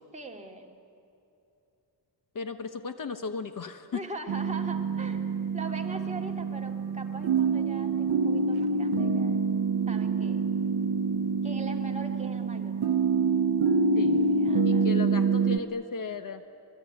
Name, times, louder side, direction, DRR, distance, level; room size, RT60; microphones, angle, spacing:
voice 1, 0.1-0.7 3.9-5.3 5.5-9.5 9.9-10.5 11.4-12.8 14.3-14.9, right 3 dB, 15° right, 1 dB, 2.5 m, -41 dB
voice 2, 2.3-4.0 13.9-14.4 14.6-16.4, left 4 dB, 45° left, 8 dB, 1.2 m, -35 dB
sound 1, 4.3-15.6, right 4 dB, 60° right, 0.9 m, -26 dB
27.0 x 21.0 x 9.5 m, 2.7 s
wide cardioid pair, 160°, 44 cm